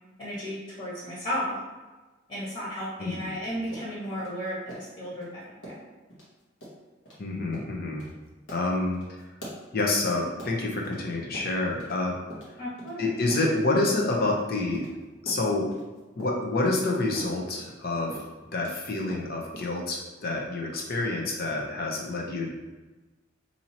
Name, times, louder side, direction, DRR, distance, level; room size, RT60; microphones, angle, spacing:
voice 1, 0.2-1.5 2.3-5.3 5.6-5.8 12.6-13.1, equal, 35° left, -9 dB, 1.4 m, -34 dB
voice 2, 3.0-3.3 7.2-8.1 8.5-9.3 9.7-12.2 13.0-14.9 15.2-15.8 16.1-18.2 18.5-22.5, left 2 dB, 50° left, 0 dB, 0.7 m, -28 dB
sound 1, 3.7-5.3 5.6-5.8 6.1-6.3 6.6-6.8 7.0-7.2 7.5-7.7 8.0-8.1 8.5-11.0 11.3-12.0 12.3-14.9 15.3-18.8 19.1-19.8, equal, 75° left, 1.2 m, -44 dB
4.3 x 2.8 x 2.8 m, 1.2 s
head